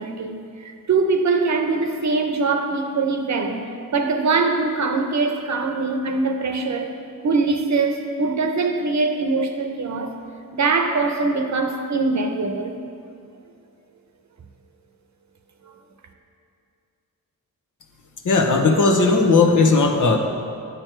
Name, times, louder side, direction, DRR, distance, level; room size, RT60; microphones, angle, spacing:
voice 1, 0.0-6.9 7.2-10.1 10.5-12.7, right 3 dB, 55° right, 0.9 m, -22 dB
voice 2, 18.2-20.2, left 3 dB, 60° left, 1.0 m, -16 dB
9.3 x 6.7 x 4.5 m
cardioid pair, 80°, 35 cm